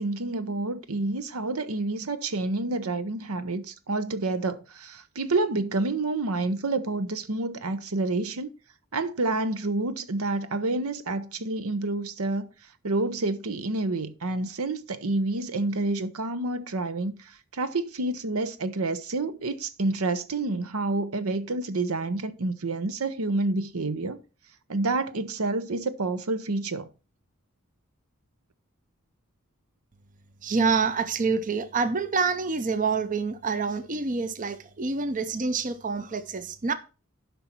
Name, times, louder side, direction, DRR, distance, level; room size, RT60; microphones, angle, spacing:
voice 1, 0.0-8.5 8.9-12.5 12.8-24.2 24.7-26.9, right 2 dB, 80° right, 0.9 m, -28 dB
voice 2, 30.4-36.7, right 4 dB, 40° right, 0.6 m, -27 dB
11.5 x 5.5 x 4.4 m
head